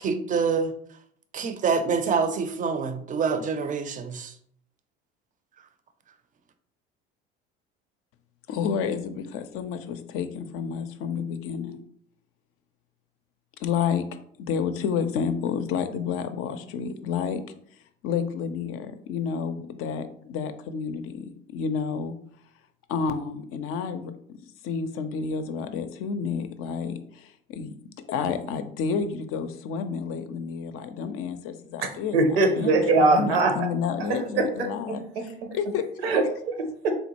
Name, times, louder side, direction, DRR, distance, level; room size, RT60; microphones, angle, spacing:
voice 1, 0.0-0.7 1.3-4.3, right 5 dB, 25° right, 0.4 m, -26 dB
voice 2, 8.5-11.8 13.6-14.0 14.4-17.4 18.0-22.1 22.9-24.1 24.6-27.7 28.1-32.2 32.6-35.8, left 6 dB, 50° left, 0.5 m, -30 dB
voice 3, 32.1-33.5 34.1-35.6 36.0-36.9, right 3 dB, 80° right, 0.7 m, -23 dB
3.7 x 2.1 x 2.8 m
hypercardioid pair, 65°, 29 cm